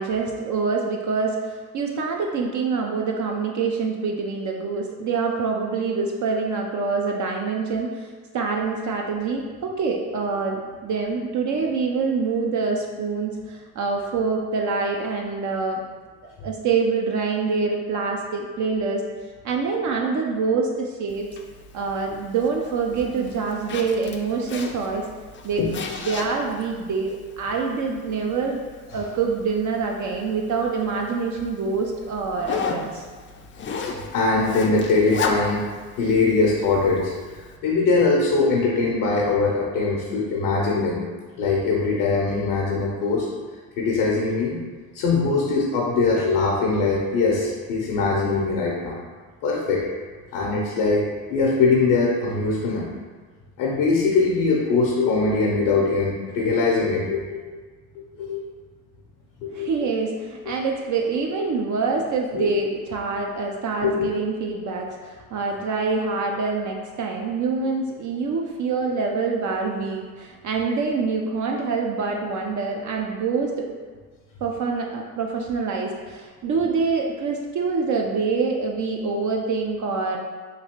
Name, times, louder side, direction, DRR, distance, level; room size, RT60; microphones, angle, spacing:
voice 1, 0.0-8.1 8.3-15.8 16.4-19.0 19.4-21.3 21.7-25.1 25.4-28.6 28.9-33.1 59.5-73.8 74.4-80.2, right 4 dB, 50° right, 0 dB, 0.5 m, -25 dB
Zipper (clothing), 21.1-37.6, left 4 dB, 30° left, 0.4 m, -35 dB
voice 2, 33.8-35.7 36.0-41.0 41.4-43.3 43.8-44.6 44.9-49.0 49.4-49.8 50.3-52.9 53.6-57.6 58.1-58.4 59.4-59.7 62.3-62.6 63.8-64.1, left 3 dB, 75° left, -2 dB, 0.6 m, -22 dB
3.0 x 2.8 x 2.9 m, 1.4 s
hypercardioid pair, 55°, 40 cm